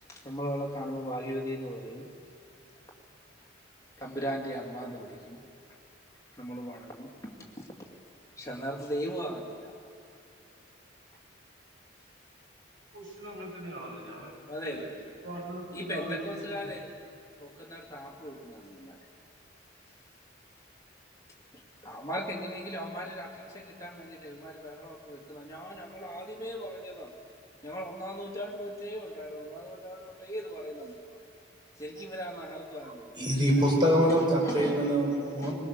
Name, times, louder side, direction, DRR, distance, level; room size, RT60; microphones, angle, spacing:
voice 1, 0.1-2.1 4.0-5.4 6.4-7.7 8.4-9.7 14.5-14.9 15.7-16.9 17.4-19.1 21.5-27.1 27.6-31.1 31.8-33.6 34.2-34.8 35.4-35.5, equal, 15° left, -2 dB, 2.5 m, -38 dB
voice 2, 12.9-14.3 14.6-14.9 15.2-16.8, right 1 dB, 70° right, -4 dB, 7.2 m, -40 dB
voice 3, 33.1-35.5, equal, 25° right, -2 dB, 4.8 m, -24 dB
21.5 x 20.5 x 6.8 m, 2.6 s
head